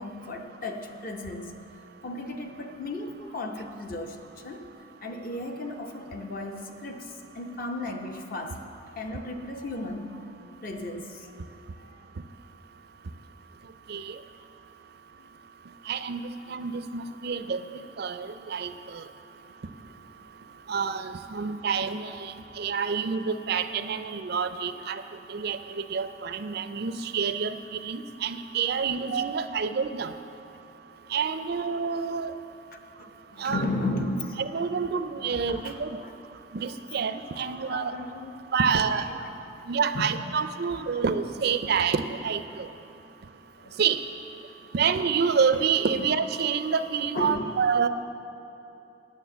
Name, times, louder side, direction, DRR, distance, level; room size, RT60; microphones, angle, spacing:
voice 1, 0.0-1.5 2.0-4.6 5.0-8.6 8.9-10.3 10.6-11.3 11.8-12.0 15.2-15.3 19.4-19.5 32.7-34.4 35.3-36.1 36.7-36.8 37.4-38.3 38.9-39.3 39.9-40.2 43.6-43.8 45.9-46.1 47.1-47.6, left 2 dB, 45° left, 4 dB, 0.7 m, -35 dB
voice 2, 15.9-16.2 16.5-17.7 18.0-19.0 20.7-25.0 25.3-30.1 31.1-32.3 33.4-33.7 34.4-36.0 36.5-37.9 38.5-39.1 39.7-42.7 43.8-44.0 44.7-47.9, right 6 dB, 50° right, 11 dB, 0.4 m, -28 dB
9.4 x 6.5 x 8.0 m, 2.9 s
head